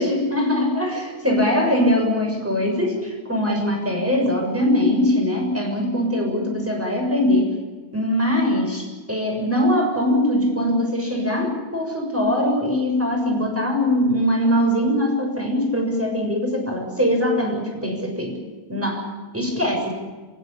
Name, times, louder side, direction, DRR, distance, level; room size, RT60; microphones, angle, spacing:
voice 1, 0.0-7.5 7.9-18.4 18.7-19.9, left 1 dB, 5° right, 1 dB, 6.6 m, -22 dB
29.5 x 16.0 x 8.8 m, 1.4 s
omnidirectional pair, 4.5 m